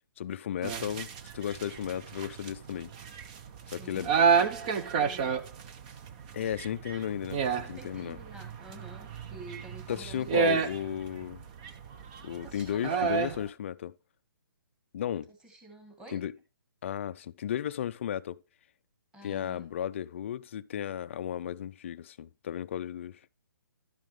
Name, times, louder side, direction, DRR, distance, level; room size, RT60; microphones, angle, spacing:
voice 1, 0.2-2.9 3.7-4.1 6.3-8.2 9.9-11.4 12.2-13.9 14.9-15.3 16.1-16.3 16.8-18.4 19.2-23.2, left 10 dB, 35° left, 0.4 m, -34 dB
sound 1, 0.6-13.4, right 6 dB, 20° right, 0.6 m, -31 dB
voice 2, 3.8-5.4 7.6-10.6 12.4-13.4 15.1-16.2 19.1-19.7, right 2 dB, 5° right, 1.9 m, -48 dB
11.5 x 9.1 x 3.2 m
hypercardioid pair, 165°, 11 cm